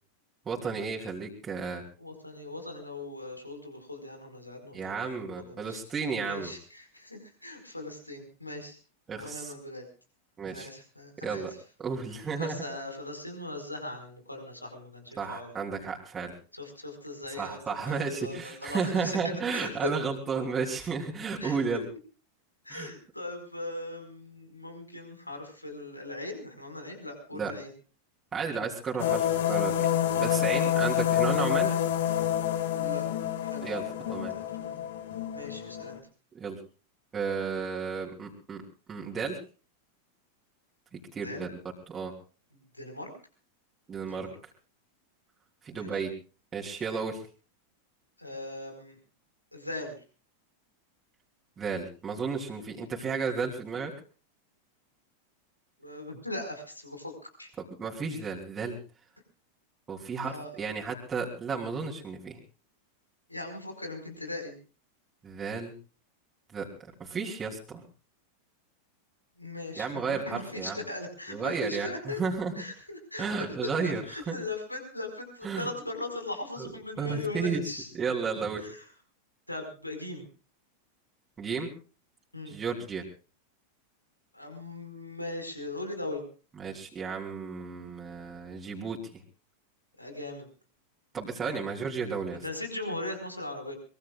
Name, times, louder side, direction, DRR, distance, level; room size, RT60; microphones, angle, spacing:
voice 1, 0.5-1.8 4.7-6.5 9.1-9.5 10.4-10.7 11.2-11.5 11.8-12.6 15.2-16.3 17.4-21.8 22.7-22.9 27.3-27.5 28.3-29.7 30.2-31.7 33.6-34.3 36.3-36.6 37.1-38.6 38.9-39.4 40.9-41.5 41.9-42.1 43.9-44.3 45.6-46.1 46.5-47.2 51.6-53.9 57.8-58.8 59.9-62.4 65.2-65.7 66.5-66.7 67.0-67.8 69.8-70.8 71.3-72.5 73.2-74.4 75.4-75.7 76.6-76.7 77.0-77.6 77.9-78.7 81.4-81.7 82.5-83.0 86.6-89.0 91.1-92.4, right 5 dB, 20° right, -2 dB, 3.2 m, -33 dB
voice 2, 2.0-5.8 6.2-8.8 9.1-9.8 10.5-11.5 12.3-15.5 16.5-17.6 17.9-19.9 21.4-21.8 22.6-27.7 30.7-31.0 32.7-33.1 33.4-33.7 34.3-34.8 35.3-36.0 41.2-41.5 42.7-43.1 44.1-44.3 45.7-46.0 48.2-49.0 49.5-49.9 55.8-57.5 60.2-60.5 63.3-64.5 69.4-72.2 72.6-77.9 78.6-78.8 79.5-80.2 82.3-82.5 84.3-86.2 90.0-90.5 91.4-91.6 92.4-93.8, left 2 dB, 85° left, 5 dB, 4.9 m, -39 dB
sound 1, 29.0-36.0, left 11 dB, 60° left, 2.0 m, -28 dB
24.0 x 22.5 x 2.4 m, 0.37 s
figure-of-eight pair, 90°, 0 cm